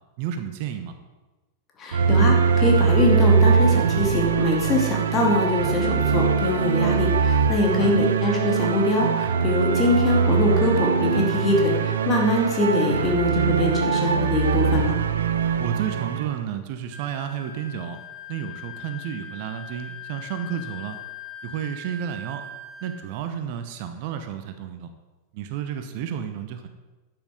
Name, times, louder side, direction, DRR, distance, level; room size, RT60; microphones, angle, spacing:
voice 1, 0.2-0.9 7.7-8.1 15.6-18.0 18.3-21.0 21.4-22.4 22.8-24.9 25.3-26.7, right 9 dB, 45° right, 8 dB, 0.9 m, -31 dB
voice 2, 1.8-14.9, left 2 dB, 30° left, 0 dB, 2.5 m, -23 dB
sound 1, 1.9-16.4, right 6 dB, 65° right, 0.6 m, -22 dB
Wind instrument woodwind instrument, 16.9-23.1, left 4 dB, 25° right, 1.6 m, -40 dB
11.5 x 7.9 x 5.0 m, 1.2 s
figure-of-eight pair, 90°, 0 cm